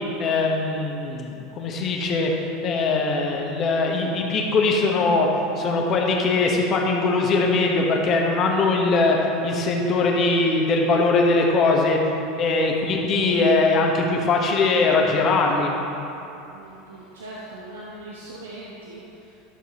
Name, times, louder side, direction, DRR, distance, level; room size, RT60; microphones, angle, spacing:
voice 1, 0.2-2.3 2.6-5.3 5.6-9.2 9.4-12.0 12.4-15.7, left 3 dB, 40° left, 0 dB, 1.3 m, -21 dB
voice 2, 16.5-19.4, right 2 dB, 75° right, -5 dB, 1.0 m, -41 dB
12.5 x 6.7 x 3.1 m, 2.9 s
figure-of-eight pair, 80°, 0 cm